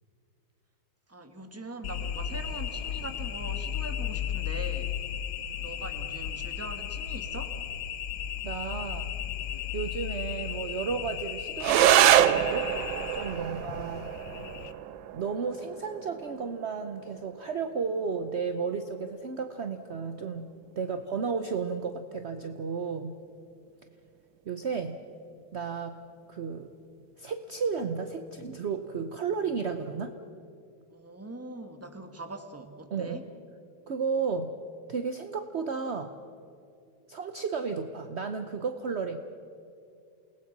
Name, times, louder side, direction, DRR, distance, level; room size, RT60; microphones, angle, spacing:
voice 1, 1.1-5.0 5.6-7.5 13.3-13.6 20.9-21.0 30.9-33.3, right 2 dB, 10° right, 6 dB, 1.3 m, -42 dB
sound 1, 1.8-14.7, left 9 dB, 65° left, 1.3 m, -35 dB
voice 2, 8.4-9.1 9.7-12.7 13.1-14.1 15.1-20.5 20.8-23.1 24.5-25.0 25.5-26.0 26.3-26.7 27.2-30.1 32.9-33.2 33.9-34.5 34.9-36.1 37.1-39.2, right 5 dB, 55° right, 7 dB, 0.7 m, -33 dB
sound 2, 11.6-20.6, right 12 dB, 75° right, 1.3 m, -27 dB
29.0 x 19.0 x 6.0 m, 2.6 s
omnidirectional pair, 2.3 m